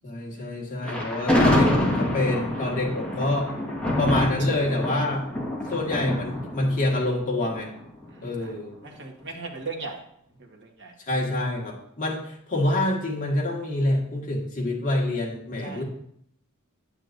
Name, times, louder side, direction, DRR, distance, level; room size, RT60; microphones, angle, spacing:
voice 1, 0.0-3.5 4.0-5.3 5.7-7.7 8.2-8.7 11.1-15.8, left 1 dB, 40° left, -2 dB, 1.8 m, -26 dB
Thunder, 0.8-8.0, left 1 dB, 5° left, 1.5 m, -26 dB
voice 2, 8.1-8.6 8.8-10.0 10.4-10.9 15.6-15.8, right 3 dB, 55° right, 0 dB, 1.5 m, -38 dB
8.7 x 8.1 x 2.6 m, 0.70 s
head